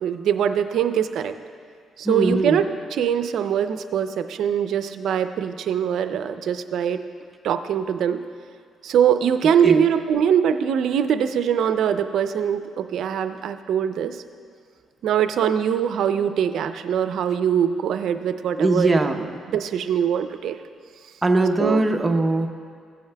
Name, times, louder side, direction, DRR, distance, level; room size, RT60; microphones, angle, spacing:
voice 1, 0.0-1.3 2.0-2.6 2.9-7.0 7.4-8.2 8.8-14.2 15.0-19.0 19.5-20.6 21.6-21.8, right 8 dB, 75° right, 10 dB, 0.4 m, -22 dB
voice 2, 2.0-2.6 9.6-9.8 18.6-19.4 21.2-22.5, right 2 dB, 25° right, 5 dB, 0.7 m, -20 dB
16.0 x 9.1 x 2.3 m, 2.1 s
cardioid pair, 90°, 0 cm